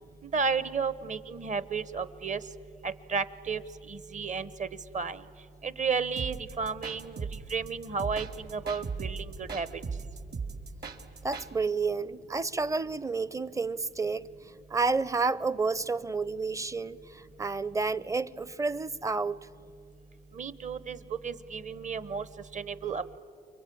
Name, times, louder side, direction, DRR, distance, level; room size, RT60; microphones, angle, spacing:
voice 1, 0.2-2.4 2.8-4.7 4.9-5.2 5.6-7.2 7.5-9.7 20.3-21.0 21.2-22.3 22.5-23.2, right 5 dB, 40° right, 1.0 m, -33 dB
sound 1, 6.2-11.5, right 5 dB, 55° right, 2.4 m, -38 dB
voice 2, 11.2-14.3 14.7-19.5, right 4 dB, 15° right, 0.6 m, -30 dB
29.0 x 23.0 x 8.6 m
cardioid pair, 90°, 20 cm